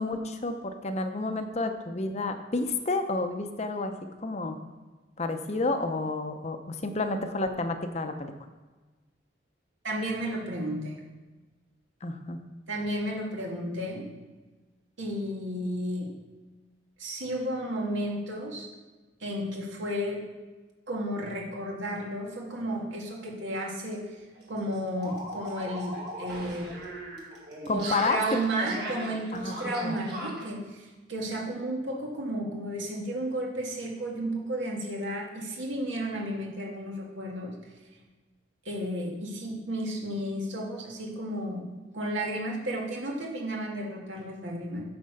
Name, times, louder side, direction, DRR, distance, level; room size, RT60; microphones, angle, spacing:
voice 1, 0.0-3.9 4.2-4.6 5.2-8.3 12.0-12.4 27.7-28.2 28.7-28.9 29.3-30.0, left 3 dB, 35° left, 7 dB, 0.7 m, -30 dB
voice 2, 9.8-11.0 12.7-14.0 15.0-16.1 17.0-18.7 19.2-20.2 20.9-24.2 24.5-26.7 27.7-37.5 38.7-41.7 41.9-44.8, right 1 dB, 80° right, -2 dB, 2.0 m, -33 dB
sound 1, 23.5-23.6 23.9-24.0 24.4-30.5, right 1 dB, 60° right, 2.0 m, -39 dB
9.1 x 4.4 x 6.6 m, 1.3 s
head